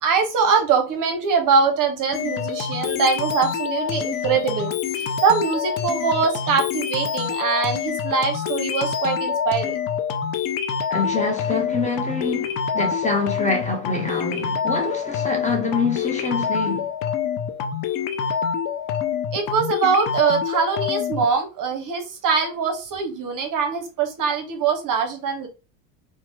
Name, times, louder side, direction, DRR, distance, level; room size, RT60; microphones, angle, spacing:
voice 1, 0.0-9.8 19.3-25.5, right 5 dB, 40° right, 0.8 m, -23 dB
sound 1, 2.1-21.3, left 7 dB, 45° left, 0.5 m, -26 dB
voice 2, 10.9-16.9, left 3 dB, 15° left, 0.8 m, -26 dB
2.9 x 2.2 x 3.2 m
hypercardioid pair, 90°, 48 cm